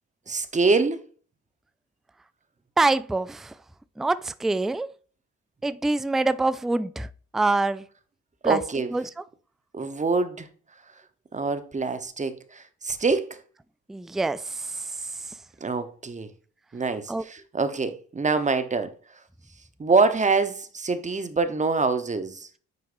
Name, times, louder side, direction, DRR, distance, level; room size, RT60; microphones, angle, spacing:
voice 1, 0.3-1.0 8.4-8.9 9.7-10.5 11.3-13.4 15.6-16.3 16.7-18.9 19.8-22.5, right 4 dB, 25° right, 1.0 m, -25 dB
voice 2, 2.8-3.5 4.0-4.9 5.6-7.1 7.3-7.8 8.4-8.6 8.9-9.0 13.9-14.8 17.1-17.2, right 2 dB, ahead, 0.3 m, -25 dB
9.5 x 4.6 x 2.6 m
cardioid pair, 90°, 30 cm